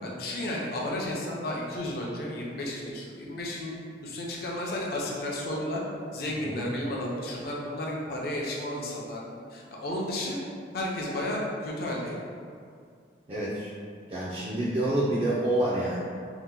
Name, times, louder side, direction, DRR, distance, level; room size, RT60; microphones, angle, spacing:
voice 1, 0.0-5.8 6.1-9.2 9.5-10.4 10.7-12.2, left 1 dB, 55° left, -3 dB, 0.5 m, -33 dB
voice 2, 13.3-13.7 14.1-16.0, right 1 dB, 30° right, -9 dB, 0.4 m, -27 dB
2.8 x 2.1 x 3.5 m, 2.3 s
head